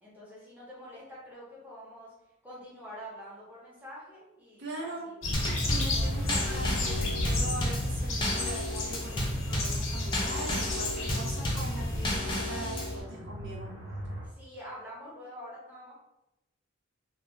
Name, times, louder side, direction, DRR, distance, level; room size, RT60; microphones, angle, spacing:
voice 1, 0.0-2.1 2.4-5.1 5.9-6.3 14.2-15.9, equal, 10° right, -7 dB, 0.7 m, -46 dB
voice 2, 4.6-5.1 5.7-13.7, right 2 dB, 55° right, -3 dB, 0.4 m, -41 dB
sound 1, 5.2-12.2, left 2 dB, 75° left, 0.6 m, -33 dB
Drum kit / Snare drum / Bass drum, 5.3-13.0, left 1 dB, 25° left, 0.4 m, -32 dB
sound 2, 9.7-14.2, equal, 85° right, 1.1 m, -43 dB
2.3 x 2.2 x 3.0 m, 0.94 s
head